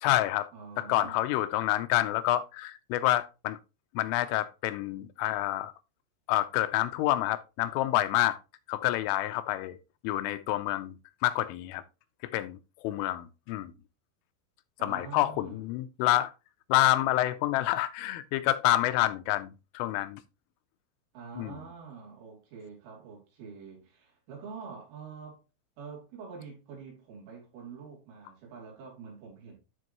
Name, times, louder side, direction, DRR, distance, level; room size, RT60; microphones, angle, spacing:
voice 1, 0.0-0.5 0.8-3.6 3.9-5.7 6.3-8.4 8.7-9.8 10.0-11.0 11.2-11.8 12.3-13.7 14.8-16.3 16.7-20.2 21.4-21.6, left 15 dB, 90° left, 3.3 m, -28 dB
voice 2, 0.5-1.2 14.8-15.7 21.1-25.4 25.8-29.6, right 5 dB, 80° right, 5.4 m, -46 dB
12.5 x 4.5 x 3.0 m
omnidirectional pair, 5.6 m